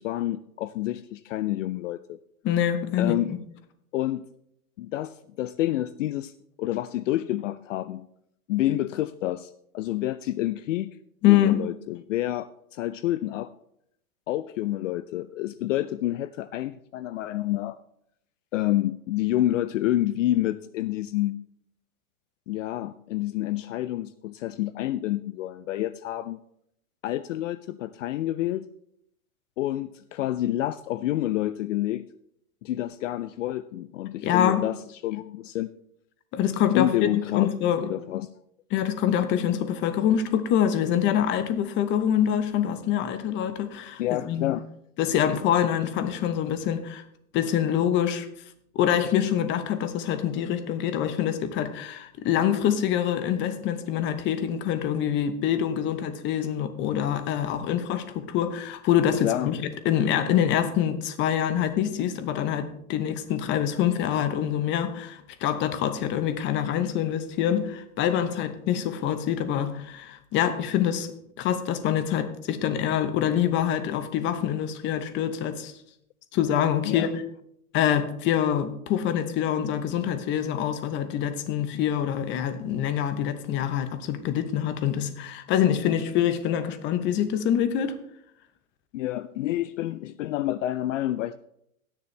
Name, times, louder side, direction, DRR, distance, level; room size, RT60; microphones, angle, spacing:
voice 1, 0.0-2.2 3.0-3.3 3.9-4.2 4.8-6.3 6.6-8.0 8.5-11.0 11.3-13.5 14.3-17.8 18.5-21.4 22.5-26.4 27.0-28.7 29.6-32.1 32.6-35.7 36.7-37.5 37.8-38.3 44.0-44.7 59.2-59.5 76.8-77.1 88.9-91.4, left 14 dB, 60° left, 15 dB, 0.5 m, -28 dB
voice 2, 2.4-3.4 11.2-11.7 34.2-34.6 36.3-37.9 38.7-44.0 44.3-44.5 45.0-47.0 47.3-48.3 48.7-71.1 71.4-75.7 76.3-77.2 77.7-87.9, left 10 dB, 25° left, 11 dB, 0.9 m, -25 dB
13.0 x 9.8 x 3.3 m, 0.74 s
hypercardioid pair, 135°, 43 cm